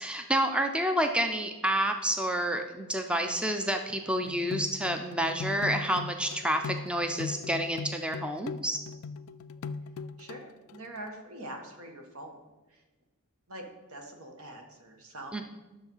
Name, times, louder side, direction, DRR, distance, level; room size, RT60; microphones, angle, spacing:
voice 1, 0.0-8.8 15.3-15.4, right 1 dB, 5° right, 5 dB, 0.5 m, -29 dB
sound 1, 4.2-11.1, left 4 dB, 60° left, 0.3 m, -39 dB
voice 2, 10.2-12.4 12.7-12.8 13.5-15.4, right 1 dB, 75° right, 3 dB, 1.6 m, -44 dB
10.5 x 6.7 x 5.6 m, 1.2 s
head